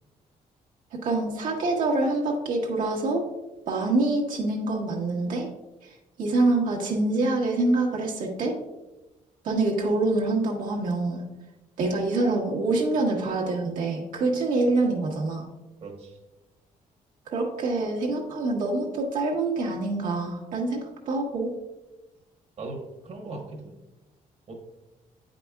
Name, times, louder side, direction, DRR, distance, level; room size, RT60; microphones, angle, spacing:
voice 1, 0.9-3.2 3.7-5.5 6.2-8.5 9.4-11.2 11.8-15.4 17.3-21.5, right 2 dB, 75° right, -2 dB, 1.3 m, -25 dB
voice 2, 15.8-16.2 22.6-23.8 24.5-24.6, right 2 dB, 45° right, 0 dB, 1.2 m, -39 dB
8.4 x 5.1 x 2.3 m, 1.0 s
cardioid pair, 115°, 14 cm